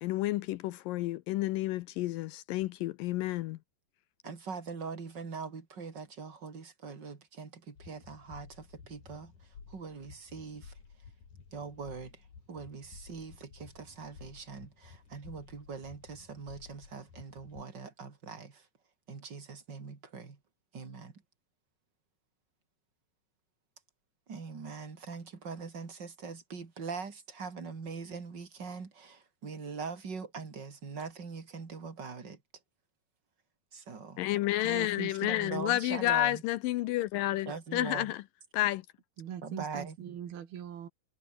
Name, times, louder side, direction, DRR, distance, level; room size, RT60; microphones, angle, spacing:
voice 1, 0.0-3.6 34.2-38.2 38.5-38.8, left 16 dB, 80° left, 2.2 m, -30 dB
voice 2, 4.2-9.3 9.7-10.7 11.5-12.2 12.5-18.7 19.1-20.4 20.7-21.2 24.3-32.4 33.7-34.2 35.3-36.4 37.4-38.1 39.4-39.9, right 5 dB, 30° right, 3.1 m, -42 dB
sound 1, 7.8-17.6, left 5 dB, 55° left, 5.4 m, -54 dB
voice 3, 34.6-35.7 39.2-40.9, right 9 dB, 80° right, 4.4 m, -42 dB
omnidirectional pair, 4.3 m